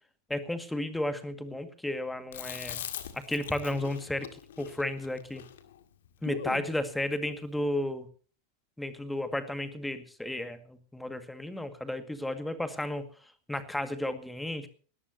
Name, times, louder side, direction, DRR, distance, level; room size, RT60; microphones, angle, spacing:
voice 1, 0.3-2.8 3.1-4.3 4.6-5.4 6.2-8.1 8.8-13.1 13.5-14.7, left 1 dB, 5° left, 10 dB, 2.0 m, -33 dB
Chewing mastication, 2.3-6.7, left 10 dB, 60° left, 1.9 m, -41 dB
20.5 x 18.0 x 2.9 m, 0.40 s
figure-of-eight pair, 90°, 0 cm